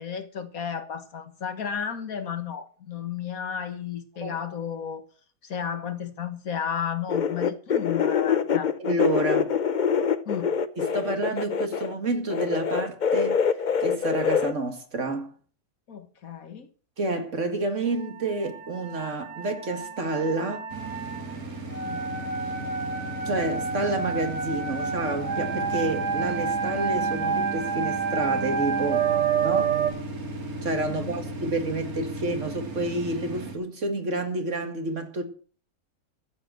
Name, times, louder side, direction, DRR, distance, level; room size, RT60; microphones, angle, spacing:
voice 1, 0.0-5.0 5.4-8.7 10.3-10.5 15.9-16.7 21.8-22.1 30.9-31.2, left 7 dB, 65° left, 1.9 m, -33 dB
sound 1, 7.1-11.9 12.3-14.5, left 7 dB, 40° left, 0.7 m, -25 dB
voice 2, 8.8-9.5 10.8-13.4 13.8-15.3 17.0-20.7 23.2-29.1 29.4-29.8 30.6-35.2, right 2 dB, 50° right, 2.4 m, -29 dB
sound 2, 17.9-29.9, right 5 dB, 85° right, 3.4 m, -29 dB
sound 3, 20.7-33.5, right 2 dB, 65° right, 2.8 m, -36 dB
14.0 x 8.0 x 7.6 m
omnidirectional pair, 1.6 m